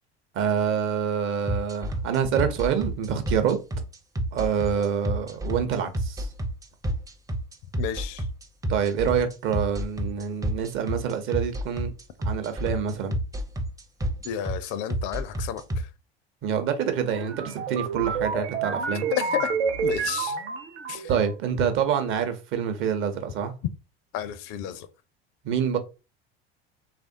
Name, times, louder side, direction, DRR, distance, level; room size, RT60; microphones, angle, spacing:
voice 1, 0.3-3.6 4.3-6.3 8.7-11.9 12.2-13.2 16.4-19.1 21.1-23.5 25.4-25.8, right 7 dB, 40° right, 0.8 m, -26 dB
sound 1, 1.5-15.8, right 1 dB, 10° right, 0.5 m, -28 dB
voice 2, 7.8-8.3 14.2-15.9 19.1-19.5 19.8-20.4 20.9-21.1 24.1-24.9, left 9 dB, 40° left, 0.4 m, -31 dB
sound 2, 17.1-21.3, right 5 dB, 75° right, 0.7 m, -29 dB
3.2 x 2.4 x 2.7 m
figure-of-eight pair, 65°, 31 cm